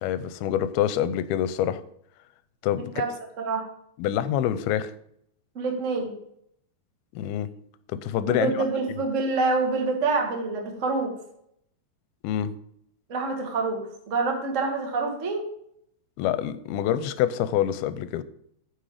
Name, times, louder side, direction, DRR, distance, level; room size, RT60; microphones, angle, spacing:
voice 1, 0.0-1.8 2.6-2.9 4.0-4.9 7.1-7.5 7.9-8.5 12.2-12.5 16.2-18.2, left 11 dB, 80° left, 14 dB, 2.5 m, -26 dB
voice 2, 5.5-6.1 8.3-11.1 13.1-13.8 14.1-15.4, right 3 dB, 45° right, 1 dB, 1.0 m, -26 dB
9.7 x 6.4 x 5.0 m, 0.71 s
omnidirectional pair, 4.6 m